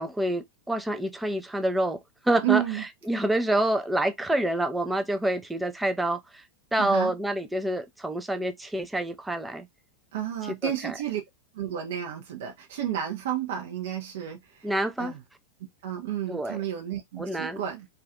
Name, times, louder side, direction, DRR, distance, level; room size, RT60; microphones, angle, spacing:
voice 1, 0.0-2.6 3.1-6.4 6.7-9.7 10.5-10.9 14.6-15.1 16.3-16.6 17.2-17.6, right 1 dB, 5° right, 0.4 m, -27 dB
voice 2, 2.4-2.8 6.8-7.1 10.1-11.2 11.5-14.7 15.0-15.2 15.8-17.9, right 11 dB, 55° right, 0.5 m, -31 dB
2.3 x 2.3 x 2.5 m
figure-of-eight pair, 90°, 0 cm